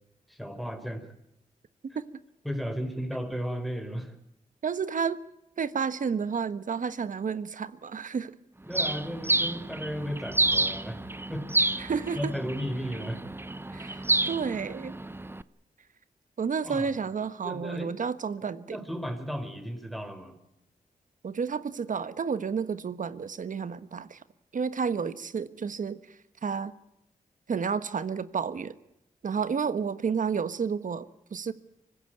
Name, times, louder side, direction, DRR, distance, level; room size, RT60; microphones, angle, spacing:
voice 1, 0.3-1.1 2.4-4.1 8.7-11.5 11.8-13.2 16.6-16.9 17.4-17.9 18.6-20.3, equal, ahead, 7 dB, 4.5 m, -35 dB
voice 2, 4.6-5.2 5.6-8.3 11.8-12.2 13.7-14.9 16.4-18.8 21.2-24.2 24.5-26.0 26.4-26.7 27.5-28.7 29.2-31.5, right 6 dB, 65° right, 13 dB, 1.3 m, -31 dB
Bird, 8.7-15.4, right 2 dB, 15° right, 0.8 m, -29 dB
25.0 x 16.0 x 9.3 m, 0.84 s
cardioid pair, 65°, 15 cm